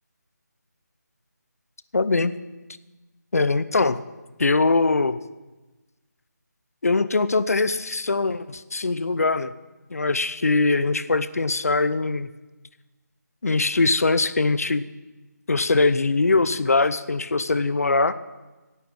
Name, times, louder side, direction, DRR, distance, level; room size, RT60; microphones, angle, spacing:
voice 1, 1.9-2.3 3.3-4.0 4.4-5.2 6.8-9.5 9.9-12.3 13.4-14.8 15.5-18.1, left 3 dB, 55° left, 14 dB, 0.7 m, -22 dB
16.5 x 9.1 x 6.4 m, 1.1 s
figure-of-eight pair, 175°, 10 cm